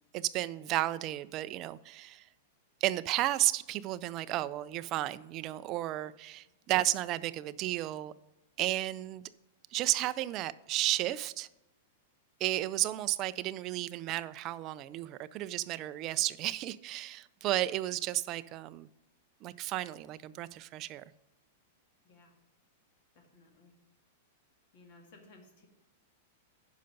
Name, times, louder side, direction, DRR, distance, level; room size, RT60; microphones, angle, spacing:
voice 1, 0.1-2.3 2.8-8.1 8.6-9.3 9.7-11.5 12.4-18.9 19.4-21.0, right 15 dB, 25° right, 0.3 m, -33 dB
voice 2, 23.1-23.7 24.7-25.7, left 2 dB, 40° left, 2.1 m, -58 dB
10.5 x 5.7 x 5.3 m
supercardioid pair, 175°, 0 cm